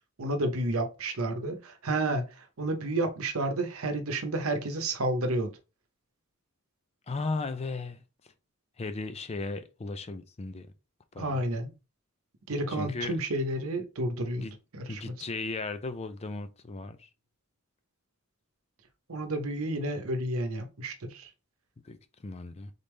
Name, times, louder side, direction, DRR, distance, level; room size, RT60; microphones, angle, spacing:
voice 1, 0.2-5.5 11.2-11.7 12.5-14.5 14.7-15.1 19.1-21.3, right 1 dB, 70° right, 0.9 m, -31 dB
voice 2, 7.1-8.0 8.8-10.7 11.1-11.4 12.7-13.2 14.4-14.5 14.9-17.1 21.8-22.7, left 3 dB, 30° left, 0.4 m, -36 dB
4.0 x 3.5 x 3.2 m
head